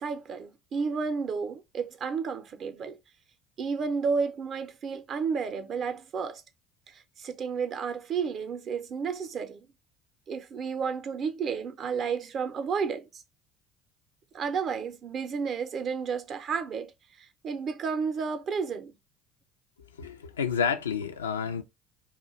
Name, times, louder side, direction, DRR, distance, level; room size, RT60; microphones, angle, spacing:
voice 1, 0.0-3.0 3.6-6.4 6.9-9.6 10.3-13.2 14.3-16.9 17.2-18.9, right 5 dB, 45° right, 0.5 m, -32 dB
voice 2, 20.0-21.6, left 6 dB, 90° left, 0.3 m, -29 dB
2.3 x 2.1 x 3.9 m
hypercardioid pair, 65°, 0 cm